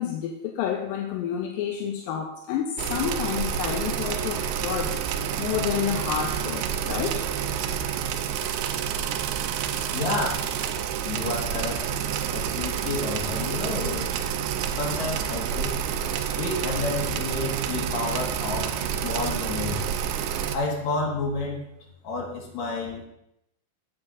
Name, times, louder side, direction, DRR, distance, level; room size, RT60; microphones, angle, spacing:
voice 1, 0.0-5.0 5.4-7.3, left 9 dB, 80° left, 4 dB, 2.1 m, -29 dB
sound 1, 2.8-20.6, right 8 dB, 90° right, 2.7 m, -29 dB
voice 2, 9.9-10.5 11.0-11.8 12.3-14.1 14.8-15.8 16.3-19.9 20.5-21.6 22.0-23.1, left 3 dB, 55° left, -2 dB, 2.8 m, -30 dB
9.7 x 7.8 x 3.8 m, 0.80 s
omnidirectional pair, 4.5 m